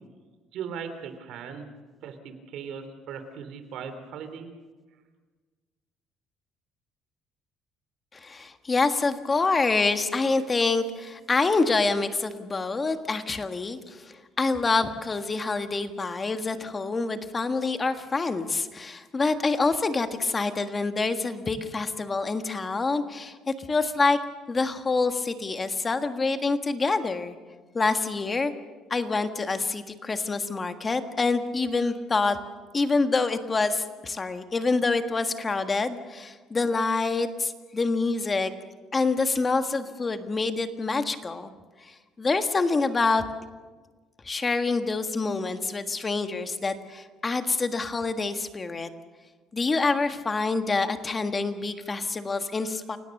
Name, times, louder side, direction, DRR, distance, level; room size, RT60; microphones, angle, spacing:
voice 1, 0.5-1.7 2.0-4.5, right 7 dB, 70° right, 8 dB, 3.3 m, -38 dB
voice 2, 8.1-24.2 24.5-27.4 27.7-28.5 28.9-32.4 32.7-38.5 38.9-41.5 41.8-43.2 44.2-48.9 49.5-53.0, left 3 dB, 20° left, 8 dB, 1.6 m, -26 dB
29.5 x 17.0 x 6.6 m, 1.4 s
cardioid pair, 130°, 0 cm